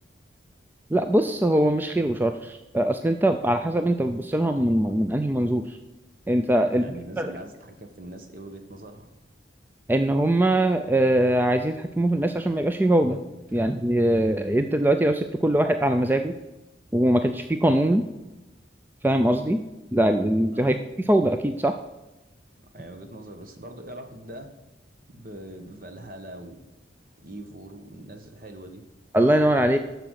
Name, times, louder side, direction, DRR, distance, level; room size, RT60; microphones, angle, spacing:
voice 1, 0.9-5.8 6.3-6.9 7.2-7.3 9.9-13.2 13.5-16.3 16.9-18.1 19.0-19.6 19.9-20.8 21.1-21.7 29.1-29.8, right 1 dB, 10° right, 7 dB, 0.3 m, -22 dB
voice 2, 6.7-9.1 20.5-20.7 22.7-24.5 25.1-26.6 27.2-28.8, right 1 dB, 45° right, 6 dB, 1.2 m, -42 dB
9.8 x 6.9 x 6.4 m, 1.0 s
head